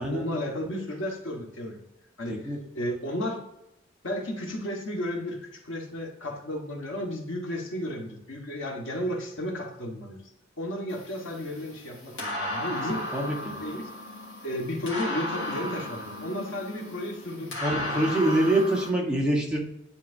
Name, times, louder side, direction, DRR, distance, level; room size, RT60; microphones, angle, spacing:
voice 1, 0.0-1.8 2.2-3.4 4.0-10.2 10.6-13.0 13.6-13.9 14.4-18.0, left 1 dB, 90° left, 1 dB, 1.5 m, -33 dB
sound 1, 10.9-18.9, left 1 dB, 70° left, 2.3 m, -35 dB
voice 2, 13.1-13.5 17.6-19.6, right 1 dB, 5° right, -3 dB, 1.3 m, -25 dB
10.5 x 4.1 x 2.7 m, 0.84 s
head